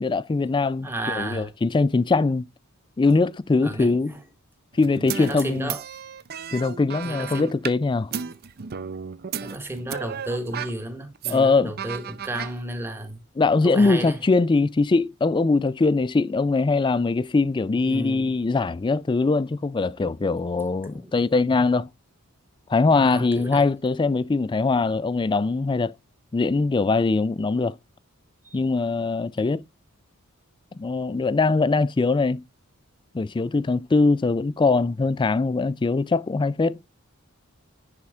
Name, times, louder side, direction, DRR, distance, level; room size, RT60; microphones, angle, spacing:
voice 1, 0.0-2.5 3.0-4.1 4.7-5.7 6.5-8.1 11.3-11.7 13.4-21.9 22.7-25.9 26.3-27.8 28.5-29.6 30.7-32.4 33.1-36.8, left 3 dB, 20° left, 0.3 m, -22 dB
voice 2, 0.8-1.5 3.6-4.2 5.2-5.8 7.0-7.6 9.4-13.2 13.6-14.2 17.8-18.3 20.0-20.1 20.9-21.1 22.9-23.6 28.4-28.6, right 1 dB, 10° right, 1.5 m, -33 dB
sound 1, 4.7-7.7 8.1-10.7 11.1-11.4 11.8-12.6, right 7 dB, 45° right, 0.5 m, -34 dB
10.5 x 4.3 x 3.6 m
head